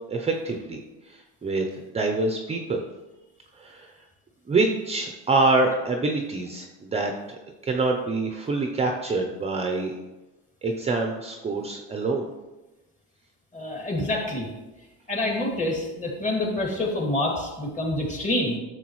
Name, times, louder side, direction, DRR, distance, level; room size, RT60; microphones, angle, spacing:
voice 1, 0.1-2.8 3.5-3.9 4.5-7.1 7.6-10.0 10.6-12.3, right 3 dB, 20° right, 3 dB, 0.7 m, -26 dB
voice 2, 13.5-14.5 15.1-18.6, left 1 dB, 25° left, -1 dB, 2.3 m, -27 dB
10.5 x 6.6 x 3.1 m, 1.1 s
cardioid pair, 130°, 31 cm